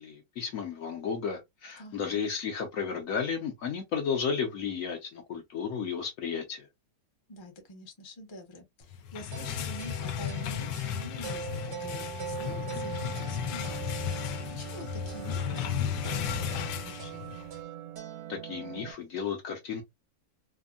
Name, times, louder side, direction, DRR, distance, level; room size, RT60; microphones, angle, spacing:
voice 1, 0.0-6.7 18.3-19.8, left 6 dB, 65° left, 0.9 m, -33 dB
voice 2, 1.8-2.2 7.3-17.5, left 2 dB, 30° left, 0.5 m, -46 dB
sound 1, 8.9-17.6, left 9 dB, 85° left, 1.2 m, -34 dB
sound 2, 9.3-18.9, right 8 dB, 85° right, 1.5 m, -41 dB
3.4 x 2.0 x 2.3 m
omnidirectional pair, 1.8 m